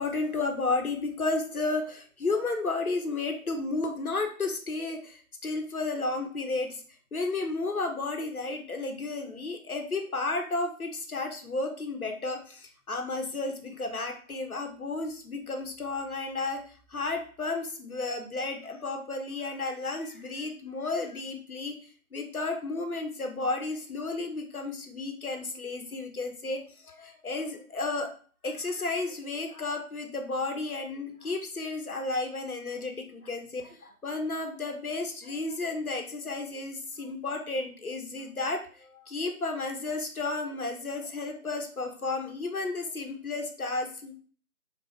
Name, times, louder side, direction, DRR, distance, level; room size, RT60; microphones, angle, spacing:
voice 1, 0.0-6.8 7.1-16.6 16.9-21.8 22.1-28.1 28.4-44.1, left 3 dB, 80° left, 4 dB, 1.0 m, -32 dB
3.5 x 3.3 x 3.2 m, 0.42 s
figure-of-eight pair, 165°, 43 cm